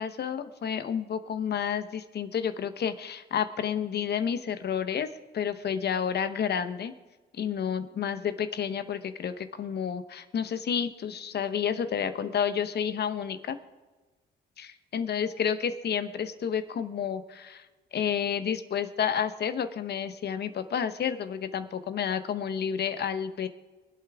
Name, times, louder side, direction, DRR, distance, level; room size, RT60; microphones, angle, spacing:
voice 1, 0.0-5.1 5.3-6.9 7.3-13.6 14.6-17.7 17.9-23.5, left 8 dB, 55° left, 11 dB, 1.0 m, -30 dB
24.5 x 8.3 x 3.6 m, 1.3 s
cardioid pair, 90°, 20 cm